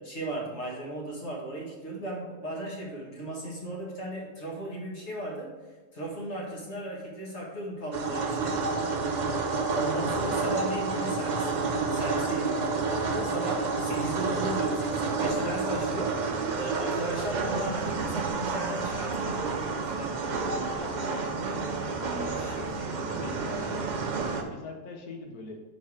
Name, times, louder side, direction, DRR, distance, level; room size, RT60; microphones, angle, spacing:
voice 1, 0.0-5.5 5.9-8.6 9.7-20.5 22.2-23.6, right 1 dB, 45° left, -2 dB, 1.7 m, -36 dB
sound 1, 7.9-24.4, right 4 dB, 75° right, 0.4 m, -30 dB
voice 2, 20.8-21.3 22.0-24.0 24.4-25.6, left 3 dB, 70° left, 3 dB, 1.4 m, -42 dB
6.4 x 4.0 x 4.8 m, 1.3 s
omnidirectional pair, 1.7 m